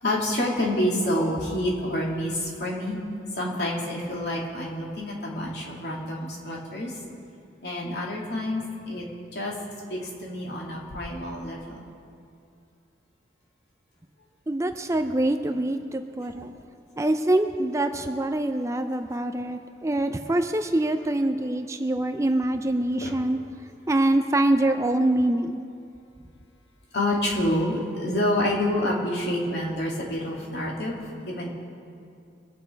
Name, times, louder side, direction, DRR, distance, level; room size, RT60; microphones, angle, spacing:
voice 1, 0.0-3.0 3.3-6.9 7.6-9.1 9.3-9.5 9.9-11.8 23.0-23.1 26.9-31.5, left 1 dB, 65° left, -3 dB, 2.8 m, -28 dB
voice 2, 14.5-16.5 17.0-23.4 23.9-25.6, right 1 dB, 15° right, 7 dB, 0.5 m, -24 dB
24.0 x 8.6 x 4.6 m, 2.4 s
head